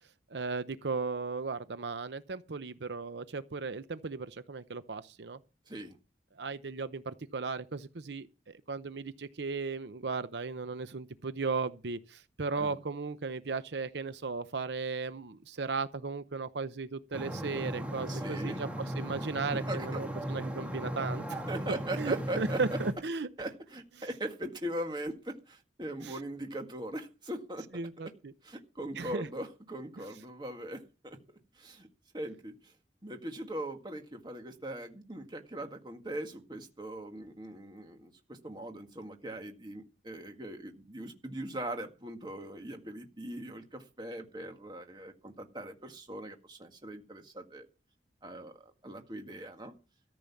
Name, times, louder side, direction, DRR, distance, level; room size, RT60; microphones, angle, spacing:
voice 1, 0.3-5.4 6.4-8.3 8.7-21.5 22.0-23.3 26.0-26.1 27.7-28.3 29.0-29.3, right 4 dB, 80° right, 0.7 m, -36 dB
voice 2, 5.7-6.0 12.6-12.8 18.1-18.6 19.5-20.0 21.5-22.6 23.4-27.7 28.4-31.2 31.5-31.9 32.1-32.7 33.0-47.7 48.2-49.7, right 1 dB, 25° right, 1.9 m, -40 dB
sound 1, 17.1-22.9, right 1 dB, 10° right, 2.3 m, -37 dB
14.0 x 6.8 x 7.1 m
head